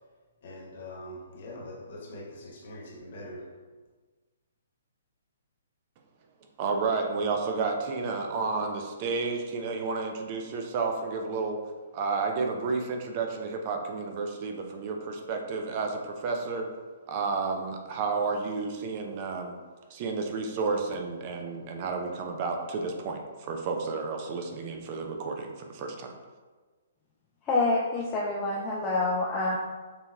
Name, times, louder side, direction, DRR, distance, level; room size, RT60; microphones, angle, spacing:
voice 1, 0.4-3.5, left 1 dB, 50° left, -3 dB, 1.2 m, -43 dB
voice 2, 6.6-11.6 11.9-16.7 17.1-19.6 19.9-26.1, right 4 dB, 35° right, 3 dB, 0.5 m, -31 dB
voice 3, 27.4-29.6, left 2 dB, 20° left, -5 dB, 0.5 m, -27 dB
6.7 x 2.9 x 2.4 m, 1.4 s
figure-of-eight pair, 125°, 0 cm